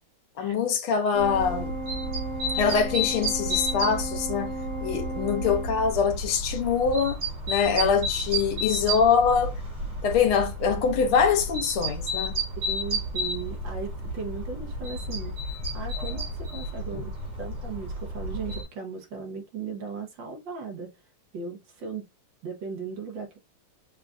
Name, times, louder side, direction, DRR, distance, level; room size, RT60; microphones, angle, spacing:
voice 1, 0.4-1.7 2.6-4.5 4.8-7.2 7.5-9.5 10.0-12.3 16.9-17.0, left 6 dB, 85° left, 1.7 m, -24 dB
Organ, 1.1-6.2, right 1 dB, 45° right, 1.7 m, -36 dB
sound 1, 1.2-18.6, equal, 85° right, 2.7 m, -32 dB
voice 2, 12.7-17.1 17.4-20.9 21.3-22.1 22.4-23.4, right 5 dB, 65° right, 1.6 m, -37 dB
5.8 x 2.4 x 2.5 m
omnidirectional pair, 2.3 m